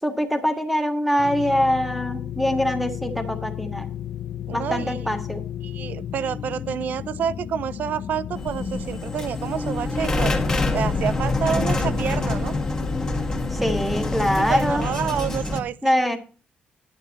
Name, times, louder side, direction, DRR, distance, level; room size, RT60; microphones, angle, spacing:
voice 1, 0.0-3.9 4.5-5.4 13.5-14.9 15.8-16.2, equal, ahead, 1.9 m, -23 dB
sound 1, 1.2-15.2, left 10 dB, 55° left, 0.6 m, -34 dB
voice 2, 4.5-5.1 5.6-10.3 10.7-12.6 13.6-13.7 14.4-15.9, right 8 dB, 60° right, 0.6 m, -28 dB
sound 2, 8.3-15.6, left 2 dB, 20° left, 1.9 m, -26 dB
11.0 x 9.2 x 4.2 m
cardioid pair, 160°, 3 cm